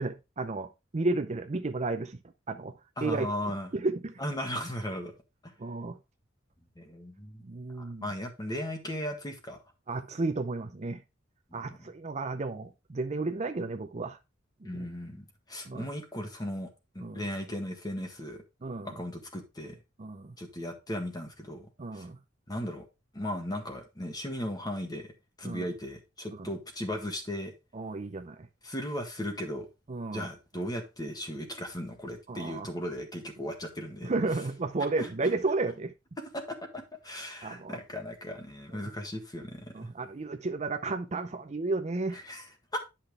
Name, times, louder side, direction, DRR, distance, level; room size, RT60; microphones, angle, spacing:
voice 1, 0.0-2.2 2.5-2.7 3.0-3.3 3.7-4.1 5.6-6.0 7.4-8.0 9.9-11.0 11.5-14.2 14.6-14.9 15.6-15.9 17.0-17.2 18.6-18.9 20.0-20.3 21.8-22.2 25.4-25.7 26.4-26.5 27.7-28.4 29.9-30.3 32.3-32.7 34.0-35.9 37.4-37.8 38.7-38.8 39.7-42.2, right 3 dB, 35° right, 0.6 m, -32 dB
voice 2, 3.0-3.7 4.2-5.1 6.8-7.4 7.8-9.6 11.5-11.7 14.6-18.4 18.8-19.8 20.4-21.7 21.9-22.1 22.5-22.9 23.1-27.5 28.6-29.7 30.1-34.1 35.0-35.1 36.2-39.9 42.1-42.8, equal, 20° left, 1.7 m, -37 dB
10.0 x 5.8 x 3.4 m
head